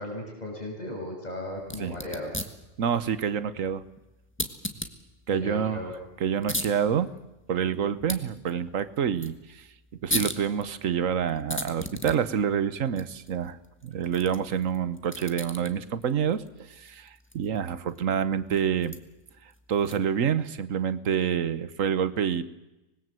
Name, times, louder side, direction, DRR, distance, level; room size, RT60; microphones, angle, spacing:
voice 1, 0.0-2.3 5.3-5.9, left 1 dB, 30° left, 0 dB, 6.8 m, -36 dB
sound 1, 1.6-20.3, left 1 dB, 10° left, 1.6 m, -39 dB
voice 2, 2.8-3.8 5.3-5.8 6.2-7.1 7.5-9.7 10.0-13.6 13.8-16.4 16.8-19.0 19.7-22.4, right 8 dB, 80° right, 15 dB, 1.4 m, -27 dB
25.5 x 20.5 x 7.7 m, 0.98 s
omnidirectional pair, 1.3 m